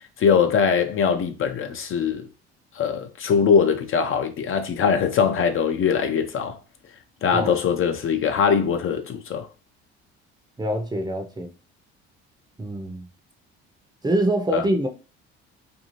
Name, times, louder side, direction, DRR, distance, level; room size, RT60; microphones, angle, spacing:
voice 1, 0.2-2.3 2.7-6.6 7.2-9.5 14.5-14.6, left 6 dB, 40° left, 0.5 m, -22 dB
voice 2, 10.6-11.5 12.6-13.1 14.0-14.9, right 1 dB, 15° right, 0.6 m, -24 dB
2.6 x 2.3 x 3.0 m
hypercardioid pair, 65°, 31 cm